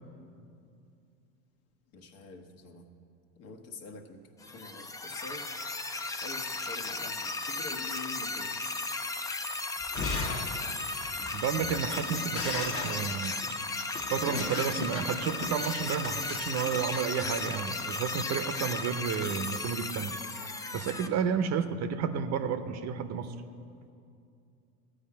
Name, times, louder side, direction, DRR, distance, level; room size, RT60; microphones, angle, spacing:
voice 1, 1.9-2.9 3.3-5.5 6.2-8.6, left 4 dB, 55° left, 3 dB, 1.4 m, -46 dB
sound 1, 4.4-21.1, left 3 dB, 10° left, 0.4 m, -35 dB
Shatter, 9.8-17.8, left 3 dB, 35° left, 1.3 m, -38 dB
voice 2, 11.3-13.6 14.1-20.2 20.7-23.3, right 7 dB, 40° right, 10 dB, 0.7 m, -31 dB
14.5 x 4.9 x 8.6 m, 2.5 s
supercardioid pair, 110°, 41 cm